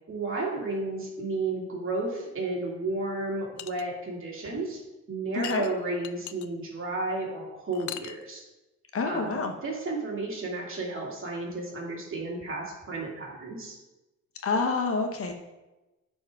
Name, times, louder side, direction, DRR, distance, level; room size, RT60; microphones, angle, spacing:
voice 1, 0.1-4.8 5.1-8.4 9.1-13.8, right 2 dB, 45° right, -3 dB, 2.7 m, -32 dB
sound 1, 3.6-3.8 5.4-6.5 7.7-8.2, left 13 dB, 75° left, 0.5 m, -39 dB
voice 2, 5.3-5.7 8.9-9.5 14.4-15.3, left 4 dB, 50° left, 4 dB, 1.1 m, -28 dB
8.9 x 4.7 x 4.8 m, 1.0 s
cardioid pair, 90°, 30 cm